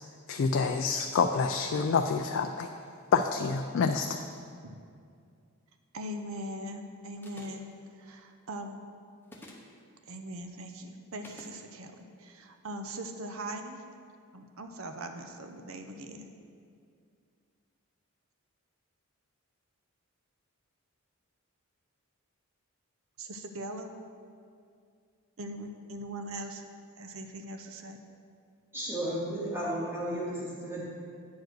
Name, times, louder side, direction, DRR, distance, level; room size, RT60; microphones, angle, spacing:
voice 1, 0.3-2.7 3.1-4.2, left 5 dB, 60° left, 6 dB, 0.3 m, -27 dB
voice 2, 5.9-7.7 8.0-8.9 10.1-13.8 14.3-16.3 23.2-23.9 25.4-26.6 27.0-28.0, right 1 dB, 65° right, 6 dB, 0.7 m, -41 dB
sound 1, 7.2-7.7 9.2-9.7 11.2-11.6, left 1 dB, 10° left, 0.8 m, -49 dB
voice 3, 28.7-30.8, right 1 dB, 10° right, -6 dB, 1.8 m, -33 dB
9.4 x 4.7 x 6.2 m, 2.3 s
head